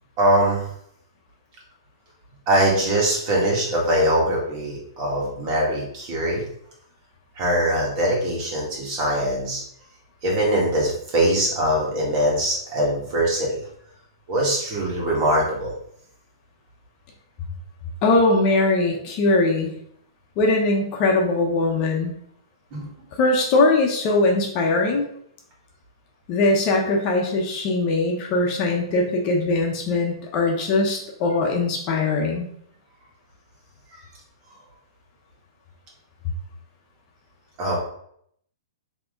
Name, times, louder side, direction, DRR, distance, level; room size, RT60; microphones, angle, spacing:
voice 1, 0.2-0.7 2.5-6.4 7.4-9.6 10.2-13.6 14.3-15.7 22.7-22.9 37.6-37.8, right 1 dB, 35° right, -3 dB, 1.9 m, -22 dB
voice 2, 18.0-19.7 20.4-22.1 23.2-25.0 26.3-32.5, left 2 dB, 35° left, 0 dB, 0.9 m, -21 dB
4.7 x 3.0 x 3.8 m, 0.69 s
hypercardioid pair, 135°, 3 cm